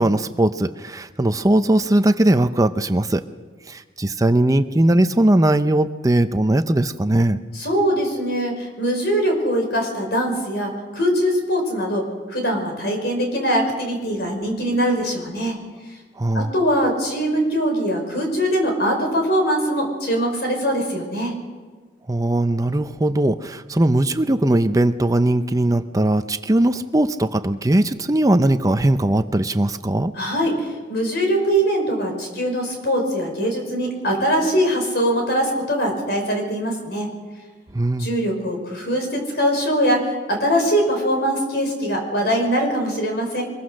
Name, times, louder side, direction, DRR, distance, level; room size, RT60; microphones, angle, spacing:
voice 1, 0.0-3.2 3.7-7.4 16.2-16.5 22.1-30.1 37.7-38.1, right 1 dB, 20° right, 9 dB, 0.6 m, -19 dB
voice 2, 7.5-15.6 16.3-21.4 30.1-37.1 38.0-43.4, equal, 65° left, 3 dB, 5.5 m, -22 dB
23.5 x 22.0 x 6.5 m, 1.4 s
head